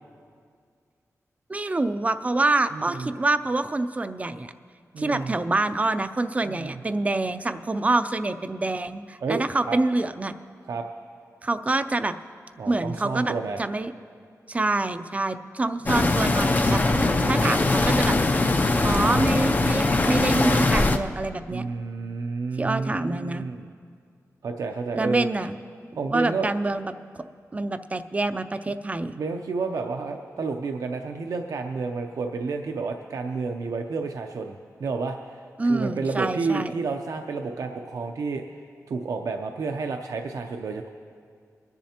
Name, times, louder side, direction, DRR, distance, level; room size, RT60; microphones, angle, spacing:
voice 1, 1.5-4.5 5.0-10.3 11.4-12.1 12.7-13.3 13.6-13.9 14.5-16.8 17.2-18.2 18.8-21.6 22.6-23.5 24.9-25.6 26.1-27.2 27.5-29.2 35.6-36.7, right 2 dB, 25° right, 10 dB, 0.4 m, -26 dB
voice 2, 2.7-3.1 4.9-5.3 6.4-6.8 9.2-9.4 9.7-9.8 10.7-10.8 12.6-13.6 15.8-16.1 16.9-17.6 21.5-23.7 24.4-25.3 25.9-26.5 29.2-34.5 34.8-35.4 35.7-38.4 38.9-40.9, right 4 dB, 75° right, 4 dB, 0.6 m, -30 dB
sound 1, 15.9-21.0, left 2 dB, 30° left, 0.5 m, -21 dB
23.0 x 10.5 x 2.9 m, 2.1 s
wide cardioid pair, 140°, 6 cm